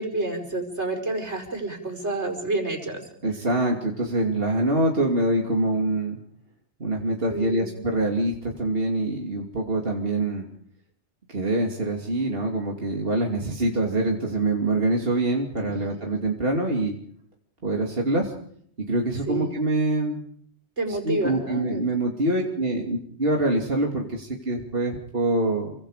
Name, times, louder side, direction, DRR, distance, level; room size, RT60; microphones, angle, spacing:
voice 1, 0.0-3.1 7.3-7.8 15.7-16.0 19.3-19.5 20.8-21.8, right 2 dB, 75° right, 4 dB, 5.5 m, -29 dB
voice 2, 3.2-6.2 6.8-10.5 11.3-16.9 17.6-18.3 18.8-20.2 21.0-25.7, right 1 dB, 55° right, 0 dB, 3.1 m, -25 dB
29.5 x 24.0 x 5.1 m, 0.64 s
omnidirectional pair, 1.2 m